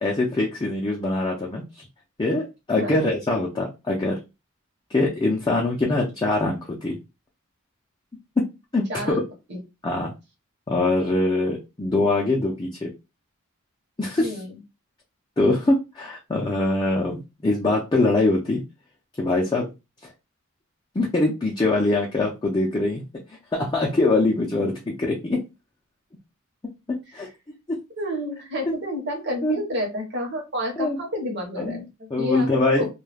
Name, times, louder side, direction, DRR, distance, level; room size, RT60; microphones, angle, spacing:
voice 1, 0.0-1.9 2.2-4.2 4.9-7.0 8.4-8.5 8.7-9.2 9.8-10.1 10.7-12.9 14.0-14.4 15.4-18.6 19.2-19.7 20.9-23.0 23.5-25.4 26.9-27.3 29.4-29.6 30.8-31.0 31.6-31.8 32.1-32.9, left 2 dB, 20° left, -2 dB, 0.4 m, -23 dB
voice 2, 2.7-3.1 8.9-9.2 9.5-9.6 14.2-14.6 28.0-32.9, equal, 55° right, 2 dB, 0.9 m, -30 dB
2.2 x 2.2 x 3.2 m, 0.26 s
head